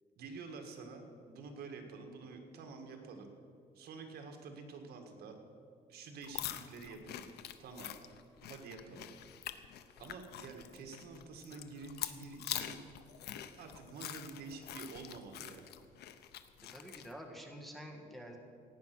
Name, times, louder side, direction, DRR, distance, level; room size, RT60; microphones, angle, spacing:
voice 1, 0.2-3.3 3.8-5.4 5.9-7.3 7.6-7.9 8.4-9.1 9.4-12.8 13.6-15.7, right 4 dB, 75° right, 4 dB, 1.8 m, -49 dB
sound 1, 6.2-17.1, left 11 dB, 80° left, 0.8 m, -45 dB
voice 2, 16.7-18.4, equal, ahead, 1 dB, 1.6 m, -48 dB
17.0 x 9.4 x 6.1 m, 2.4 s
cardioid pair, 145°, 16 cm